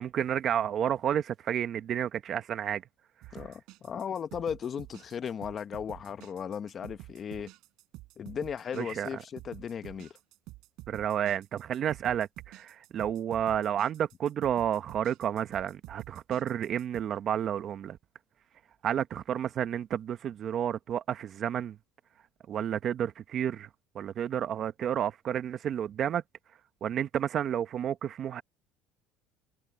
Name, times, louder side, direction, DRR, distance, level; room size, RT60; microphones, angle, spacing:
voice 1, 0.0-2.8 8.8-9.2 10.9-18.0 18.8-21.8 22.5-23.7 23.9-26.2 26.8-28.4, right 9 dB, 45° right, 1.0 m, -31 dB
sound 1, 3.2-17.0, right 19 dB, 70° right, 7.8 m, -49 dB
voice 2, 3.3-7.5 8.2-10.1, left 7 dB, 35° left, 1.3 m, -36 dB
cardioid pair, 115°, 0 cm